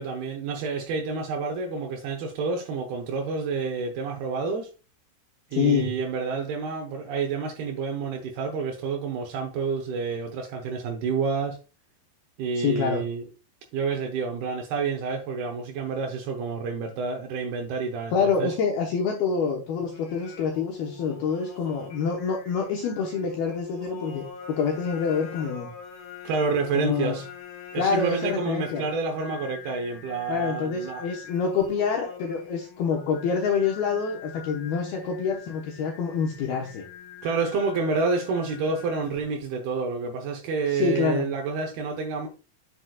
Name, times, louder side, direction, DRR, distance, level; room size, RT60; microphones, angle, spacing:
voice 1, 0.0-4.7 5.5-11.6 12.4-13.3 13.7-18.5 26.2-27.3 27.7-31.1 37.2-42.3, right 4 dB, 90° right, 2.2 m, -29 dB
voice 2, 5.5-5.9 12.6-13.0 18.1-25.7 26.7-27.2 27.8-28.9 30.3-36.9 40.7-41.3, left 6 dB, 85° left, 2.2 m, -26 dB
Singing, 19.8-39.4, left 7 dB, 40° left, 2.5 m, -44 dB
7.9 x 7.9 x 2.3 m
omnidirectional pair, 5.8 m